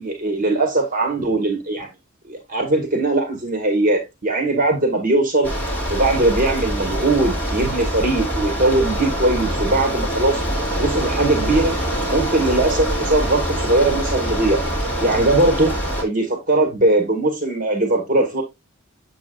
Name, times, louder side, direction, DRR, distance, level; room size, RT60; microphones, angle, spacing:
voice 1, 0.0-1.9 2.3-5.5 5.9-10.4 10.8-11.8 12.1-14.6 15.0-15.7 16.0-18.4, right 2 dB, 40° right, 1.8 m, -20 dB
Bicycle, 5.4-16.0, equal, 10° left, 2.8 m, -24 dB
7.7 x 7.3 x 2.5 m
head